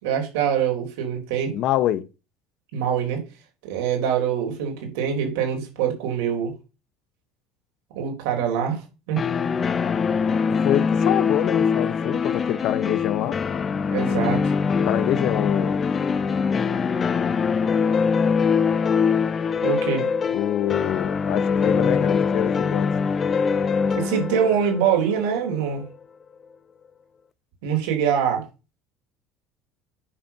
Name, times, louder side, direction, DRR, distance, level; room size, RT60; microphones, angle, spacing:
voice 1, 0.0-1.5 2.7-3.2 3.6-6.5 7.9-8.8 9.1-9.2 13.9-14.5 19.6-20.1 23.9-25.8 27.6-28.4, right 8 dB, 80° right, 4.4 m, -24 dB
voice 2, 1.5-2.1 10.5-13.4 14.8-15.8 20.3-22.9, left 12 dB, 65° left, 0.9 m, -25 dB
sound 1, 9.2-25.9, left 6 dB, 35° left, 0.9 m, -23 dB
9.9 x 5.3 x 5.9 m
supercardioid pair, 90°, 0 cm